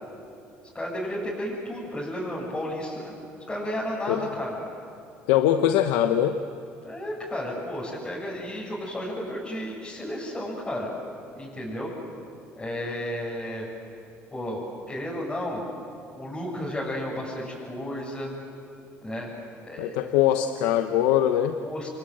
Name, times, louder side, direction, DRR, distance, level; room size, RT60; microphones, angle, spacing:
voice 1, 0.7-3.1 3.5-4.5 6.8-10.9 11.4-11.9 12.6-13.7 14.3-15.6 16.1-18.3 19.0-19.3 19.6-20.1 21.6-21.9, equal, 15° left, -6 dB, 7.0 m, -33 dB
voice 2, 5.3-6.4 19.8-21.6, left 11 dB, 85° left, 8 dB, 1.0 m, -22 dB
28.5 x 22.5 x 7.9 m, 2.7 s
supercardioid pair, 95°, 5 cm